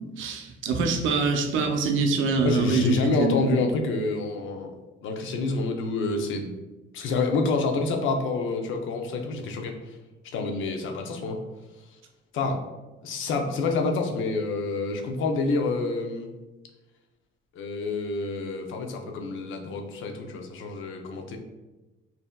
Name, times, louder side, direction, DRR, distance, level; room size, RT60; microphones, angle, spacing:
voice 1, 0.2-3.6, right 3 dB, 80° right, 4 dB, 0.6 m, -24 dB
voice 2, 2.4-4.7 5.0-6.5 6.9-9.8 10.3-11.4 12.3-12.6 13.0-16.3 17.5-21.4, left 3 dB, 80° left, 4 dB, 0.6 m, -28 dB
5.5 x 2.7 x 2.2 m, 1.1 s
cardioid pair, 90°, 20 cm